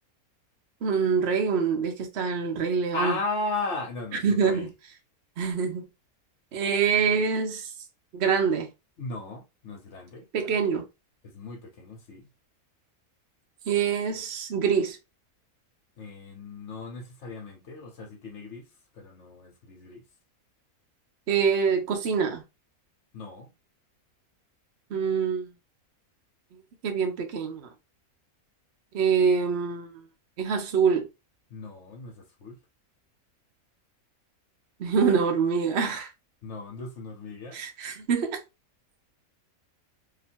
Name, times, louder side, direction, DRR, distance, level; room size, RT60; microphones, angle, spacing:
voice 1, 0.8-3.2 4.2-4.7 5.4-5.9 6.5-7.7 8.1-8.7 10.3-10.9 13.7-15.0 21.3-22.4 24.9-25.5 26.8-27.7 28.9-29.9 30.4-31.1 34.8-36.1 37.5-38.4, right 6 dB, 55° right, 0.9 m, -25 dB
voice 2, 2.9-4.7 9.0-10.2 11.2-12.3 16.0-18.6 19.0-20.0 23.1-23.5 31.5-32.6 36.4-37.6, left 3 dB, 55° left, 1.1 m, -36 dB
2.8 x 2.7 x 4.3 m
omnidirectional pair, 1.6 m